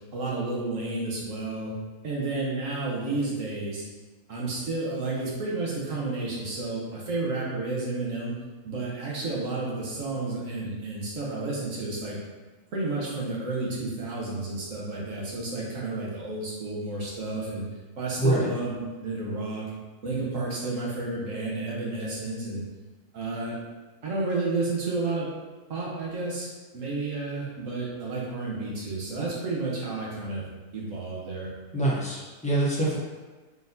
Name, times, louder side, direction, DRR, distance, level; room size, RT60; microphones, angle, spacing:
voice 1, 0.1-1.7 2.0-3.8 4.3-8.3 8.6-12.2 12.7-17.6 18.0-19.7 20.0-22.6 23.1-23.5 24.0-25.3 25.7-30.4 30.7-31.5, right 3 dB, 60° right, -4 dB, 1.3 m, -31 dB
voice 2, 18.2-18.5 31.7-33.0, right 1 dB, 10° left, -7 dB, 0.4 m, -25 dB
4.1 x 3.6 x 2.7 m, 1.3 s
omnidirectional pair, 1.7 m